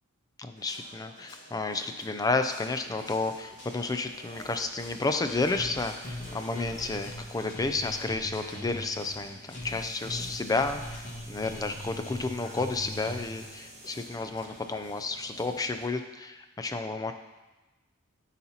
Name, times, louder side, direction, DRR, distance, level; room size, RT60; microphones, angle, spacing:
voice 1, 0.4-17.1, left 3 dB, 15° left, 7 dB, 0.4 m, -31 dB
sound 1, 0.6-15.9, left 1 dB, 55° left, 1.5 m, -51 dB
sound 2, 2.4-15.8, right 1 dB, 25° right, 1.8 m, -52 dB
sound 3, 5.5-13.5, left 1 dB, 35° left, 1.4 m, -41 dB
12.0 x 4.1 x 2.9 m, 1.1 s
head